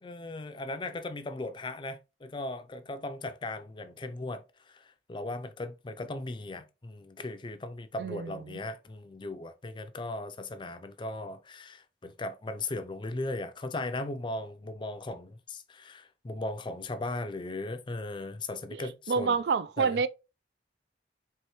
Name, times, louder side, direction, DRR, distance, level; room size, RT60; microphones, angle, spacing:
voice 1, 0.0-19.4 19.8-20.0, left 2 dB, 25° left, 0.4 m, -37 dB
voice 2, 8.0-8.6 18.7-20.1, right 5 dB, 65° right, 0.3 m, -29 dB
4.6 x 3.1 x 3.0 m
head